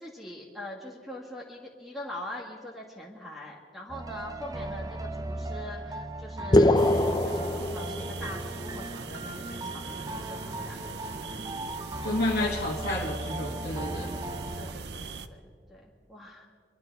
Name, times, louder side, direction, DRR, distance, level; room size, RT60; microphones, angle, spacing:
voice 1, 0.0-6.8 7.2-11.5 14.6-16.5, left 1 dB, ahead, -4 dB, 1.7 m, -43 dB
sound 1, 3.9-14.7, right 1 dB, 20° right, 0.6 m, -37 dB
sound 2, 6.5-8.5, left 1 dB, 25° left, 0.6 m, -23 dB
sound 3, 6.8-15.3, right 5 dB, 70° right, 0.6 m, -41 dB
voice 2, 12.0-14.1, left 2 dB, 60° left, -3 dB, 1.5 m, -30 dB
24.0 x 11.5 x 4.6 m, 2.1 s
head